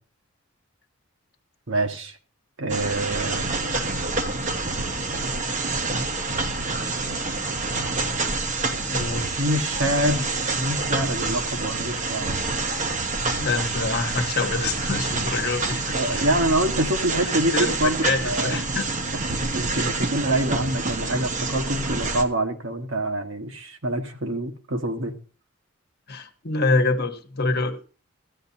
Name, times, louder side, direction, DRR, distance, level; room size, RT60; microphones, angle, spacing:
voice 1, 1.7-2.2 2.6-3.5 9.4-12.4 15.9-18.6 19.1-19.2 19.5-25.1, right 1 dB, 65° right, 5 dB, 1.2 m, -26 dB
sound 1, 2.7-22.2, right 3 dB, 40° right, 1.0 m, -27 dB
voice 2, 8.9-9.4 13.4-16.2 17.5-17.7 18.0-18.9 19.7-19.8 26.1-27.8, left 3 dB, 55° left, 7 dB, 1.2 m, -26 dB
14.0 x 9.6 x 2.7 m, 0.37 s
head